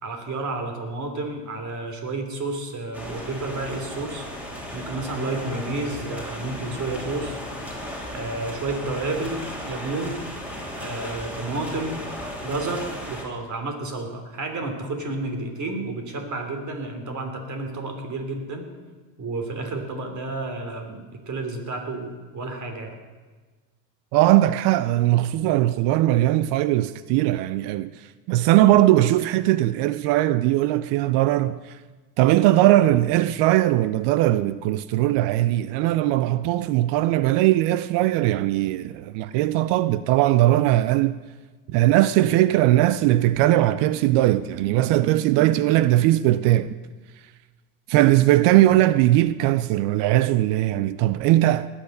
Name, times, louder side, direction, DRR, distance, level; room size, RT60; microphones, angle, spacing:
voice 1, 0.0-4.3 4.7-7.4 8.1-10.3 10.8-12.1 12.4-18.7 19.2-22.9, right 2 dB, 35° right, 3.2 m, -31 dB
sound 1, 2.9-13.2, equal, 5° right, 3.5 m, -35 dB
voice 2, 24.1-27.9 28.3-31.8 32.2-41.2 41.7-46.7 47.9-51.7, right 15 dB, 60° right, 0.6 m, -19 dB
19.5 x 7.5 x 6.6 m
hypercardioid pair, 85°, 48 cm